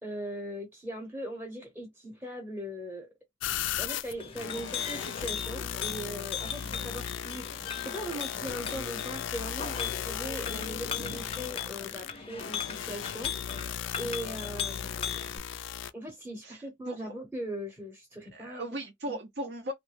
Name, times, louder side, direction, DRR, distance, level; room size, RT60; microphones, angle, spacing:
voice 1, 0.0-3.1 3.8-13.3 14.0-15.2 15.9-18.7 19.1-19.2, equal, 10° right, 0.8 m, -40 dB
sound 1, 3.4-15.9, left 9 dB, 90° left, 0.3 m, -37 dB
Chink clink, 4.0-15.4, left 7 dB, 30° left, 0.5 m, -39 dB
voice 2, 6.6-7.0 11.0-11.2 16.4-17.1 18.3-19.7, right 1 dB, 60° right, 0.6 m, -39 dB
3.1 x 2.2 x 3.2 m
head